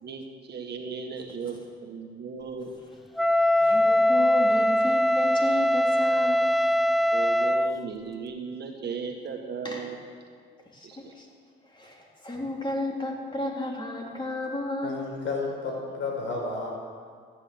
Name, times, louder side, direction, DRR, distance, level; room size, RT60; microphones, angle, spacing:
voice 1, 0.0-2.7 7.1-10.0 10.8-11.1, right 5 dB, 55° right, 2 dB, 1.8 m, -36 dB
Wind instrument woodwind instrument, 3.2-7.8, left 1 dB, ahead, 0.3 m, -22 dB
voice 2, 3.6-6.5 9.6-9.9 10.7-11.3 11.7-15.0, left 2 dB, 25° left, -1 dB, 3.5 m, -33 dB
voice 3, 14.8-16.7, left 3 dB, 75° left, 0 dB, 4.8 m, -32 dB
14.5 x 9.8 x 8.0 m, 2.1 s
cardioid pair, 90°, 20 cm